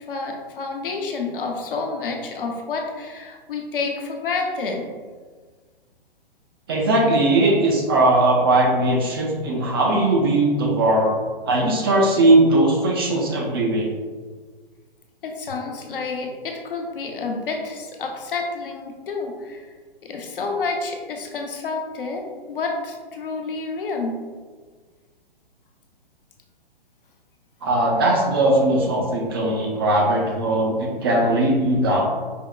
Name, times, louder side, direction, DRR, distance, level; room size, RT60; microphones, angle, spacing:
voice 1, 0.1-4.8 15.2-19.7 20.0-24.2, left 4 dB, 65° left, 2 dB, 0.6 m, -29 dB
voice 2, 6.7-11.1 11.5-13.9 27.6-32.1, right 2 dB, 25° right, -1 dB, 0.4 m, -19 dB
4.9 x 2.0 x 2.3 m, 1.5 s
figure-of-eight pair, 125°, 29 cm